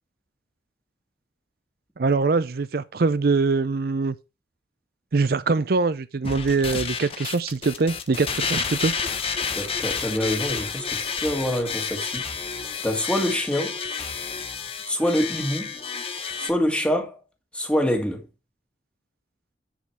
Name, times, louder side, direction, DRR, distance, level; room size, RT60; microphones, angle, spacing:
voice 1, 2.0-4.2 5.1-8.9, right 4 dB, 60° right, 0.5 m, -23 dB
sound 1, 6.2-16.5, left 6 dB, 35° left, 1.0 m, -30 dB
voice 2, 9.6-12.2 12.8-13.8 14.9-15.7 16.4-17.2 17.5-18.2, equal, 5° left, 1.9 m, -25 dB
10.0 x 5.2 x 4.6 m
head